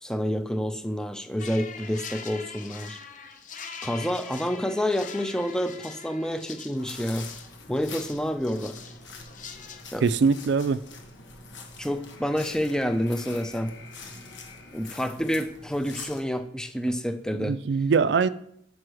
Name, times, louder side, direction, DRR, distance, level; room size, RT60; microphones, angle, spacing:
voice 1, 0.0-3.0 3.8-7.3 7.7-8.8 9.9-10.1 11.8-13.7 14.7-17.6, equal, 5° left, 0.4 m, -28 dB
sound 1, 1.4-9.8, left 6 dB, 40° left, 0.6 m, -42 dB
sound 2, 6.8-16.4, left 4 dB, 70° left, 1.2 m, -44 dB
voice 2, 10.0-10.8 17.3-18.3, right 5 dB, 60° right, 0.3 m, -22 dB
5.4 x 4.7 x 6.2 m
head